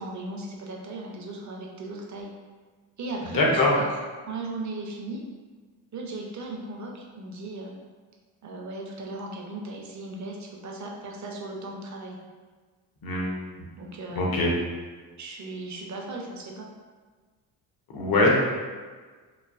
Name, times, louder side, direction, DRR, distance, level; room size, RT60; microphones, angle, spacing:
voice 1, 0.0-2.3 3.0-3.9 4.3-5.2 5.9-7.7 8.4-12.2 13.8-14.4 15.2-16.7, right 2 dB, 40° right, 0 dB, 0.6 m, -37 dB
voice 2, 3.3-3.8 13.0-13.3 14.1-14.5 17.9-18.4, left 2 dB, 50° left, -2 dB, 0.9 m, -22 dB
3.1 x 2.1 x 2.4 m, 1.4 s
supercardioid pair, 65°, 45 cm